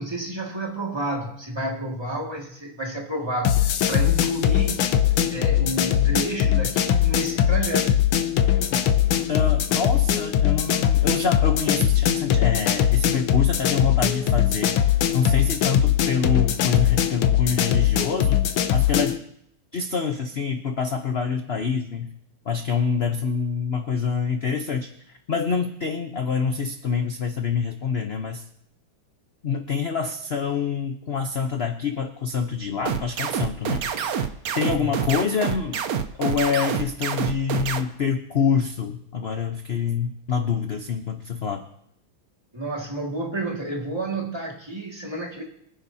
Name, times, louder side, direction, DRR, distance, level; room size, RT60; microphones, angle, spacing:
voice 1, 0.0-4.9 5.3-8.0 34.8-35.1 42.5-45.4, right 1 dB, 15° right, 0 dB, 2.0 m, -30 dB
sound 1, 3.4-19.2, left 10 dB, 90° left, 1.7 m, -21 dB
voice 2, 8.5-8.8 9.3-14.8 15.1-18.5 18.7-19.2 19.7-22.1 22.4-24.9 25.3-28.4 29.4-34.3 34.5-35.8 36.2-41.6, left 6 dB, 55° left, 5 dB, 0.6 m, -26 dB
sound 2, 32.9-37.8, right 7 dB, 60° right, 1.0 m, -26 dB
24.0 x 10.5 x 2.8 m, 0.71 s
omnidirectional pair, 2.2 m